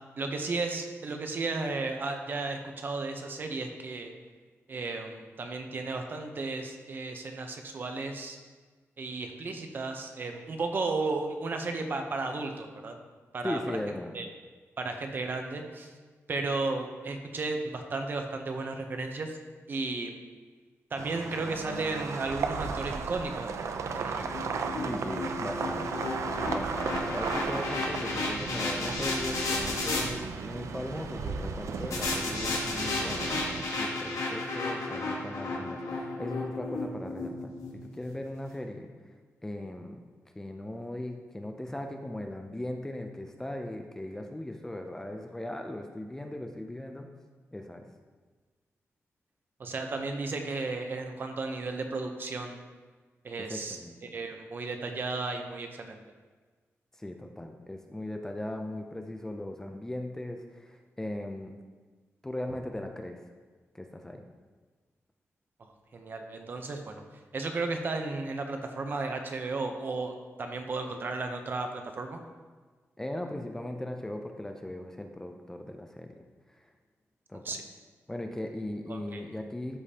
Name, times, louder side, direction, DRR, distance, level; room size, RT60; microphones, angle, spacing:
voice 1, 0.2-4.1 4.7-8.4 9.0-13.0 13.3-13.6 14.1-14.3 14.8-15.9 16.3-19.4 19.7-20.1 20.9-24.4 49.6-52.6 53.2-56.0 65.9-67.0 67.3-70.1 70.4-72.2 77.4-77.6 78.9-79.2, right 3 dB, 45° right, 5 dB, 0.7 m, -34 dB
voice 2, 13.4-14.2 24.8-26.1 26.5-39.1 39.4-40.0 40.4-47.1 47.5-47.8 53.5-54.0 56.9-61.5 62.2-63.2 63.7-64.2 73.0-76.2 76.5-76.7 77.3-77.6 78.1-79.8, left 1 dB, 10° left, 4 dB, 0.4 m, -38 dB
sound 1, 21.0-33.6, right 5 dB, 75° right, 0.5 m, -35 dB
sound 2, 23.9-30.0 31.9-38.1, left 2 dB, 85° left, 1.4 m, -33 dB
12.5 x 5.0 x 2.8 m, 1.4 s
wide cardioid pair, 180°, 5 cm